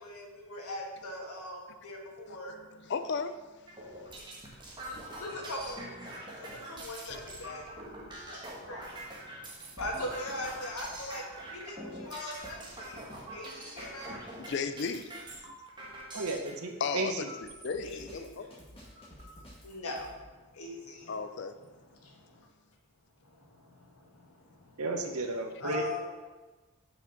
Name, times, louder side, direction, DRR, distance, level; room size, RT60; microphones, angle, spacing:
voice 1, 0.0-2.5 4.9-5.9 6.3-7.6 8.2-14.2 17.8-18.5 19.6-21.2 21.9-22.5 23.2-24.8 25.6-26.1, left 1 dB, 85° left, 0 dB, 1.6 m, -41 dB
voice 2, 2.6-3.3 7.1-7.2 14.4-15.1 15.4-15.5 16.8-18.6 21.1-21.6, left 5 dB, 50° left, 10 dB, 0.4 m, -35 dB
sound 1, 3.7-16.5 17.2-17.7 18.3-18.4 18.7-19.3, right 1 dB, 20° right, 1.3 m, -44 dB
voice 3, 16.1-17.3 24.8-25.8, right 2 dB, 85° right, 4 dB, 1.0 m, -33 dB
Drum kit, 17.7-20.1, equal, 25° left, 2.0 m, -52 dB
6.1 x 5.1 x 5.8 m, 1.2 s
head